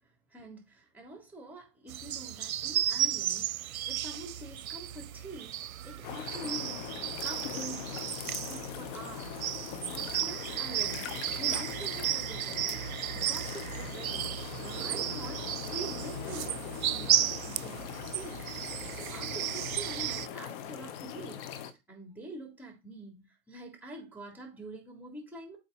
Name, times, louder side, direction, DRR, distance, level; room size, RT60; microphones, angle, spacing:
voice 1, 0.3-6.9 7.2-9.4 9.9-18.5 18.9-21.6 21.9-25.6, right 1 dB, 5° right, 3.5 m, -46 dB
sound 1, 1.9-20.3, right 11 dB, 80° right, 0.6 m, -34 dB
sound 2, 6.0-21.7, left 9 dB, 45° left, 1.2 m, -41 dB
8.0 x 4.7 x 4.3 m
hypercardioid pair, 105°, 42 cm